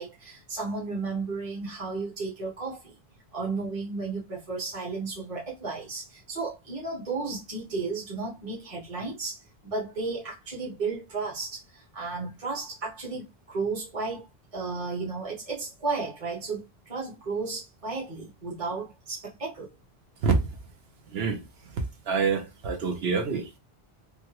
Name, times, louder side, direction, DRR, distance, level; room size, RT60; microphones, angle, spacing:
voice 1, 0.0-2.9 3.3-19.7, right 4 dB, 35° right, 1.2 m, -34 dB
voice 2, 21.1-21.4 22.1-23.6, right 5 dB, 75° right, 1.0 m, -26 dB
3.5 x 2.2 x 2.9 m
omnidirectional pair, 1.0 m